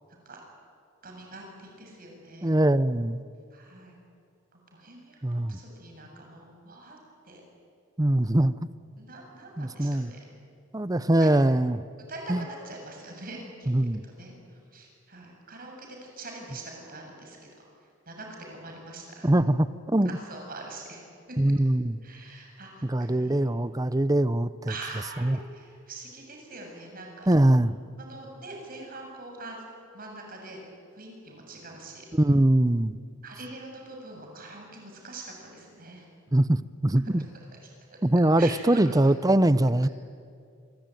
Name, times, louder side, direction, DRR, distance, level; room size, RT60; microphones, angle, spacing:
voice 1, 1.0-2.5 3.5-3.9 4.5-7.0 7.2-7.4 9.0-10.2 10.8-11.3 12.1-13.9 14.2-17.7 18.1-19.3 20.1-21.0 21.3-21.5 22.0-23.4 24.7-27.3 28.0-29.6 29.9-30.6 30.9-32.1 33.2-36.1 37.0-37.1 37.9-38.0 38.4-39.1, right 2 dB, 45° right, 1 dB, 7.3 m, -44 dB
voice 2, 2.4-3.2 5.2-5.6 8.0-8.5 9.6-10.1 10.7-11.8 12.3-12.4 13.7-14.0 19.2-20.2 21.4-22.0 22.8-24.7 25.2-25.4 27.3-27.7 32.1-32.9 36.3-37.3 38.0-39.9, right 1 dB, 20° right, 15 dB, 0.7 m, -22 dB
27.0 x 22.5 x 9.2 m, 2.3 s
head